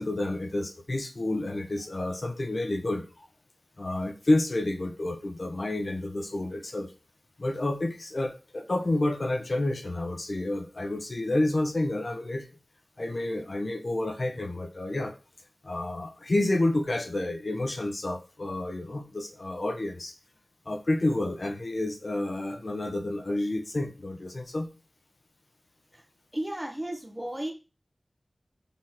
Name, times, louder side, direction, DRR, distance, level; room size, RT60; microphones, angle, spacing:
voice 1, 0.0-3.3 3.8-6.9 7.4-12.5 13.0-15.1 15.6-20.1 20.7-24.7, left 1 dB, 50° left, 5 dB, 1.2 m, -29 dB
voice 2, 26.3-27.5, right 1 dB, 10° right, 2 dB, 1.5 m, -34 dB
7.2 x 3.8 x 6.0 m, 0.32 s
wide cardioid pair, 70°, 0 cm